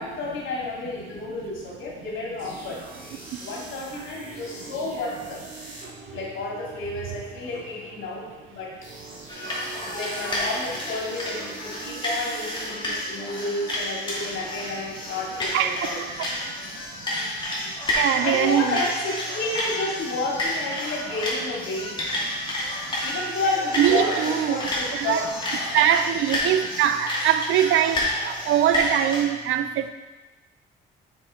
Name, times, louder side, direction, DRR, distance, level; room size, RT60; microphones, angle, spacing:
voice 1, 0.0-2.9 3.4-5.4 6.1-8.9 9.9-16.0 18.2-22.0 23.0-25.3, left 2 dB, 80° left, -3 dB, 2.4 m, -31 dB
sound 1, 2.4-16.1, right 3 dB, 45° right, 2.6 m, -43 dB
sound 2, 9.3-29.2, left 1 dB, 25° left, 2.5 m, -30 dB
voice 2, 17.9-18.8 23.8-24.6 24.9-25.3 25.7-29.9, right 10 dB, 80° right, 10 dB, 0.5 m, -22 dB
7.3 x 6.1 x 3.8 m, 1.2 s
cardioid pair, 90°, 20 cm